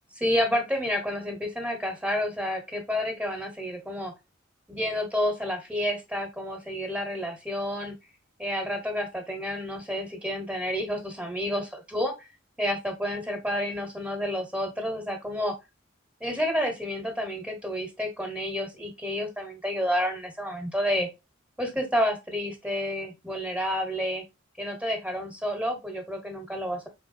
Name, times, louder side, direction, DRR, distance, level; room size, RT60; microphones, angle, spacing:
voice 1, 0.2-4.1 4.7-7.9 8.4-12.1 12.6-15.5 16.2-21.1 21.6-24.2 24.6-26.9, equal, 5° right, 3 dB, 1.3 m, -30 dB
4.7 x 3.6 x 2.7 m, 0.23 s
head